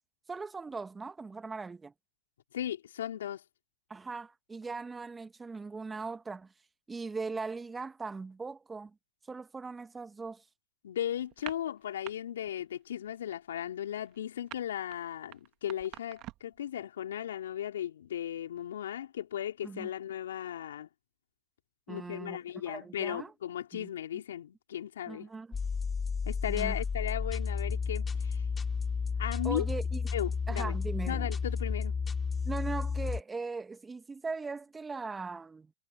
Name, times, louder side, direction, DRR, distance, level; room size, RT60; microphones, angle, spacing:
voice 1, 0.3-1.9 3.9-6.5 6.9-8.9 9.3-10.4 19.6-19.9 21.9-23.3 23.7-23.9 25.1-25.6 26.5-26.7 29.4-30.0 30.5-31.3 32.4-35.7, right 4 dB, 15° right, 1.6 m, -39 dB
voice 2, 2.5-3.4 10.8-20.9 21.9-25.3 26.3-28.4 29.2-29.7 30.1-30.8 31.1-31.9, left 10 dB, 80° left, 3.9 m, -36 dB
sound 1, 11.3-12.1 12.4-12.8 13.0-16.6, right 17 dB, 45° right, 1.7 m, -46 dB
sound 2, 25.5-33.2, left 5 dB, 20° left, 2.4 m, -32 dB
hypercardioid pair, 100°, 0 cm